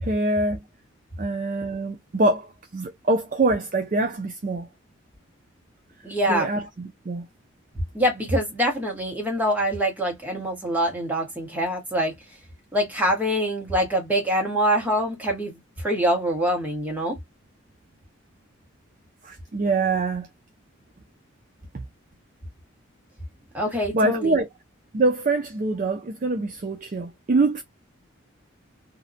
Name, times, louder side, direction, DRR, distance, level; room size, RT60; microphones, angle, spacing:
voice 1, 0.0-0.6 1.2-4.7 6.3-7.3 19.2-20.3 21.7-21.8 23.9-24.5 24.9-27.6, right 2 dB, 40° right, 0.4 m, -24 dB
voice 2, 6.0-6.5 7.9-12.1 12.7-17.2 23.5-24.4, equal, 10° right, 1.0 m, -24 dB
2.8 x 2.1 x 2.4 m
head